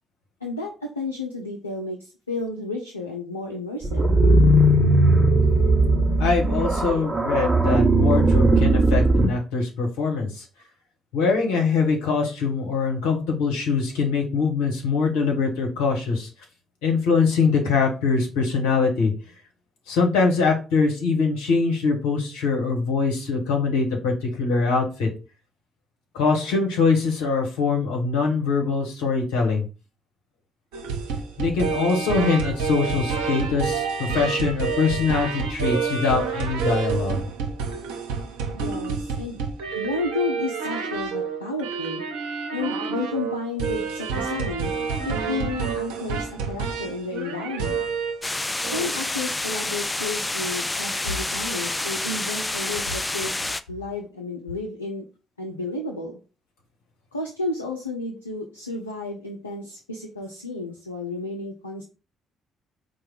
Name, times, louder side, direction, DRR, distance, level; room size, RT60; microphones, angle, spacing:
voice 1, 0.4-0.7 1.0-4.1 38.5-39.4 39.7-42.0 42.5-44.7 45.0-47.8 48.6-53.4 53.7-55.0 55.4-56.2 57.1-61.8, left 3 dB, 85° left, 0 dB, 0.4 m, -32 dB
sound 1, 3.8-9.3, right 2 dB, 15° right, 0.9 m, -18 dB
voice 2, 6.2-10.4 11.1-16.3 16.8-19.1 19.9-25.1 26.1-29.7 31.4-37.2, left 4 dB, 70° left, 1 dB, 1.2 m, -23 dB
sound 2, 30.7-48.3 48.6-48.9, right 5 dB, 70° right, 0.8 m, -28 dB
sound 3, 48.2-53.6, left 2 dB, 15° left, 0.3 m, -28 dB
4.5 x 2.3 x 4.8 m, 0.33 s
figure-of-eight pair, 45°, 0 cm